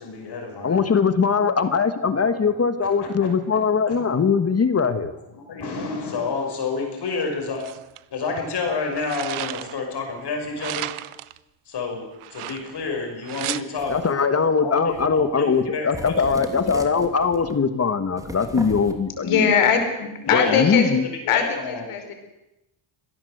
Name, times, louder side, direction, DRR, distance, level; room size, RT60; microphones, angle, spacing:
voice 1, 0.0-0.9 3.0-3.6 3.9-4.0 5.3-7.8 8.1-10.9 11.6-14.0 14.6-16.4 20.2-20.5 21.3-21.9, left 4 dB, 50° left, 2 dB, 5.8 m, -29 dB
voice 2, 0.6-5.1 13.9-19.5 20.3-21.0, left 5 dB, 30° left, 10 dB, 1.5 m, -21 dB
sound 1, 7.6-8.0 8.7-9.9 10.6-11.4 12.2-12.9 13.2-13.6, right 14 dB, 75° right, 1.1 m, -33 dB
sound 2, 13.8-14.2 14.9-15.3 15.6-15.7 15.9-17.6 18.2-18.9, right 1 dB, 5° right, 2.8 m, -36 dB
voice 3, 19.2-20.9 21.3-22.1, left 7 dB, 80° left, 5 dB, 5.2 m, -21 dB
25.5 x 18.0 x 8.0 m, 0.93 s
cardioid pair, 145°, 50 cm